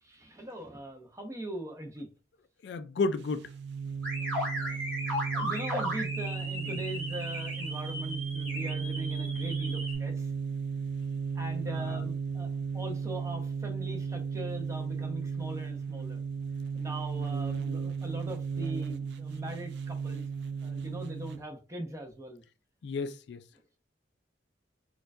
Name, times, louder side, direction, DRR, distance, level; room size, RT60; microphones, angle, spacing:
voice 1, 0.0-2.1 4.6-4.8 5.3-10.3 11.3-16.2 16.7-20.3 20.6-22.4, right 1 dB, 15° right, 0.6 m, -41 dB
voice 2, 2.6-3.4 6.6-6.8 11.9-12.0 22.8-23.4, left 3 dB, 65° left, 0.3 m, -32 dB
sound 1, 3.2-21.4, right 6 dB, 60° right, 0.3 m, -35 dB
sound 2, 4.0-9.9, equal, 5° left, 1.6 m, -36 dB
4.3 x 2.3 x 2.6 m
head